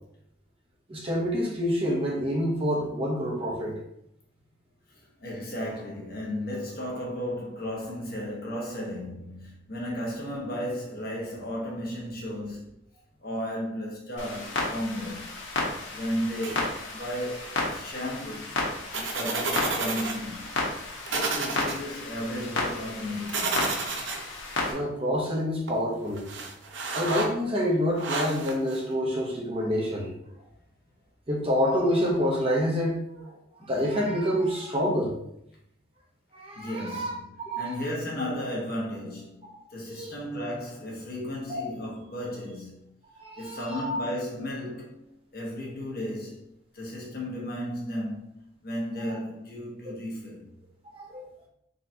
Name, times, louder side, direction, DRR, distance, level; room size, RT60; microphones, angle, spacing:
voice 1, 0.9-3.8 24.7-26.2 26.9-30.1 31.3-33.2 33.7-35.2 36.3-37.1 37.5-37.8 39.9-40.1 41.5-41.7 43.1-44.0 49.8-50.0 50.9-51.2, equal, 30° right, 1.0 m, -27 dB
voice 2, 5.2-12.7 13.2-15.4 15.9-18.6 18.9-20.5 21.1-23.6 36.5-42.7 43.4-45.0 45.3-46.4 46.7-48.3 48.6-50.4, equal, 50° left, 1.3 m, -34 dB
Clock, 14.2-24.7, left 2 dB, 85° left, 1.1 m, -33 dB
sound 1, 16.4-16.9 18.9-20.2 20.5-20.6 21.1-21.8 23.3-24.2 25.7-25.8 26.2-27.3 28.0-28.8, right 3 dB, 75° right, 0.7 m, -30 dB
4.0 x 3.9 x 2.8 m
head